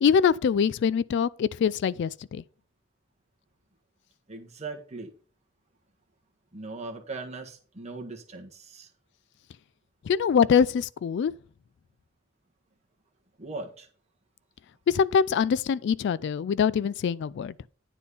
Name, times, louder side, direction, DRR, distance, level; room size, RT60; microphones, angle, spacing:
voice 1, 0.0-2.4 10.1-11.3 14.9-17.5, left 7 dB, 60° left, 0.3 m, -24 dB
voice 2, 4.3-5.1 6.5-8.9 13.4-13.9, right 3 dB, 35° right, 1.5 m, -39 dB
9.9 x 4.3 x 5.4 m
head